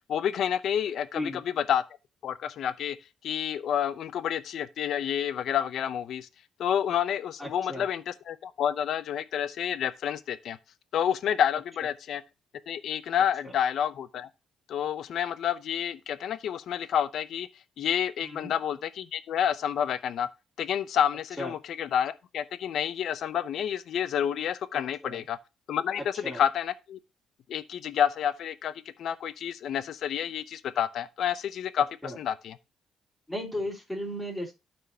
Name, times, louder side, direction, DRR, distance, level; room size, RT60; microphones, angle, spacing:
voice 1, 0.1-1.8 2.2-3.0 3.2-6.3 6.6-10.6 10.9-12.2 12.7-14.3 14.7-17.5 17.8-20.3 20.6-25.4 25.7-27.0 27.5-28.7 29.0-32.6, left 9 dB, 70° left, 0.6 m, -29 dB
voice 2, 7.4-7.9 13.4-13.5 18.2-18.5 21.4-21.5 25.0-25.2 26.2-26.4 32.0-32.2 33.3-34.5, left 1 dB, 10° left, 3.1 m, -35 dB
12.5 x 4.5 x 2.8 m
cardioid pair, 90°, 0 cm